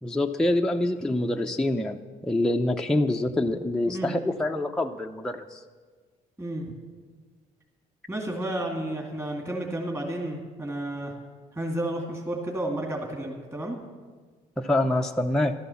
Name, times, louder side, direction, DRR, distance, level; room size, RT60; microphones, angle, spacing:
voice 1, 0.0-5.6 14.6-15.5, left 1 dB, 5° left, 2 dB, 0.6 m, -26 dB
voice 2, 8.1-11.1 11.5-13.8, right 1 dB, 15° right, -1 dB, 2.3 m, -31 dB
12.5 x 12.0 x 7.1 m, 1.5 s
cardioid pair, 95°, 16 cm